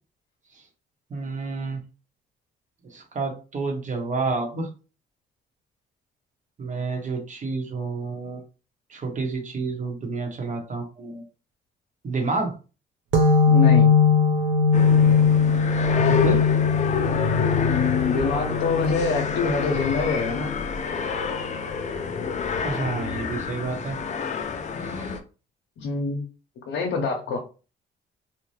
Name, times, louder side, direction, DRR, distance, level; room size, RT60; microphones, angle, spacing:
voice 1, 1.1-1.8 2.8-4.7 6.6-8.4 8.9-11.2 12.0-12.5 16.1-16.5 22.6-24.0 24.8-25.1, right 3 dB, 40° right, 3 dB, 0.9 m, -29 dB
sound 1, 13.1-20.4, left 5 dB, 75° right, 0.7 m, -20 dB
voice 2, 13.5-13.9 17.6-20.5 25.8-26.3 26.7-27.4, left 5 dB, 75° left, 0 dB, 0.7 m, -25 dB
sound 2, 14.7-25.2, left 6 dB, 35° left, 0.5 m, -28 dB
2.7 x 2.2 x 3.1 m, 0.34 s
cardioid pair, 90°, 20 cm